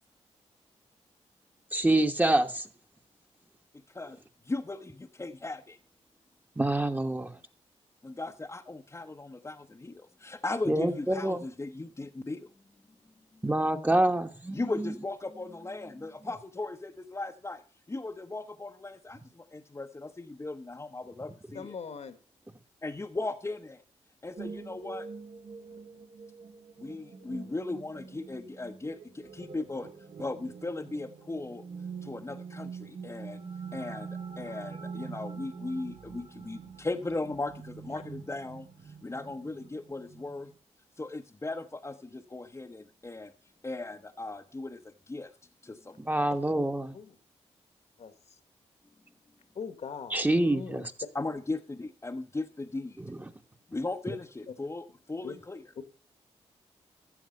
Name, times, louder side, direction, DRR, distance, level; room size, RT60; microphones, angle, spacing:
voice 1, 1.7-2.7 6.6-7.3 10.7-11.4 13.4-14.7 46.0-46.9 50.1-50.9 53.0-53.3, right 1 dB, 15° right, 1.2 m, -26 dB
voice 2, 4.5-5.8 8.0-12.5 14.5-17.6 17.9-21.8 22.8-23.8 24.2-25.1 26.8-29.9 30.2-31.6 32.0-33.4 33.7-34.1 34.4-38.7 39.0-40.5 41.0-43.3 43.6-45.3 45.6-46.2 51.1-53.0 53.7-55.6, left 2 dB, 25° left, 0.8 m, -37 dB
voice 3, 21.5-22.1 46.9-47.1 48.0-48.1 49.5-50.2 50.5-50.9 55.2-55.3, left 6 dB, 65° left, 1.6 m, -40 dB
sound 1, 24.4-40.5, right 5 dB, 75° right, 2.2 m, -44 dB
13.5 x 7.4 x 5.4 m
cardioid pair, 60°, 12 cm